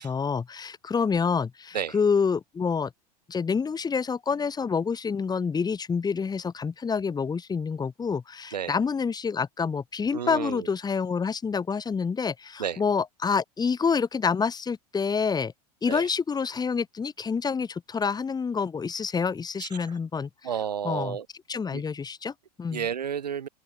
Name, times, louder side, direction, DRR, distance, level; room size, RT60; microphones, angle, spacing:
voice 1, 0.0-2.9 3.3-15.5 15.8-20.3 20.8-21.2 21.5-22.9, left 5 dB, 20° left, 3.2 m, -27 dB
voice 2, 10.1-10.7 12.6-12.8 15.9-16.1 19.6-19.9 20.4-21.3 21.7-21.8 22.7-23.5, right 8 dB, 85° right, 2.2 m, -31 dB
open air
hypercardioid pair, 95°, 20 cm